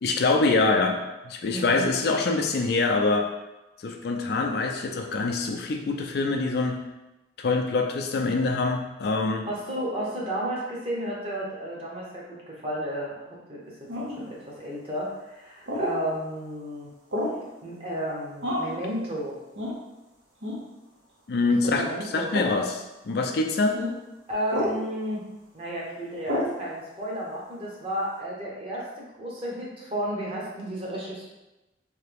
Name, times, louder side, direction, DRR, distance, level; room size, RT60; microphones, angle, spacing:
voice 1, 0.0-1.0 1.2-3.3 3.8-6.8 7.4-9.5 21.3-23.8, left 3 dB, 60° left, 3 dB, 0.4 m, -25 dB
voice 2, 1.5-1.9 9.5-13.1 13.5-16.9 17.6-19.4 21.6-22.3 24.3-25.2 25.5-28.9 29.2-31.3, right 1 dB, 30° right, -5 dB, 0.9 m, -32 dB
sound 1, 13.9-14.2 15.7-16.0 17.1-17.4 18.4-18.8 19.5-19.8 20.4-20.6 21.7-21.9 22.3-22.6 23.7-23.9 24.5-24.8 26.3-26.5, left 1 dB, 85° right, 0.9 m, -29 dB
3.3 x 2.8 x 3.4 m, 1.0 s
head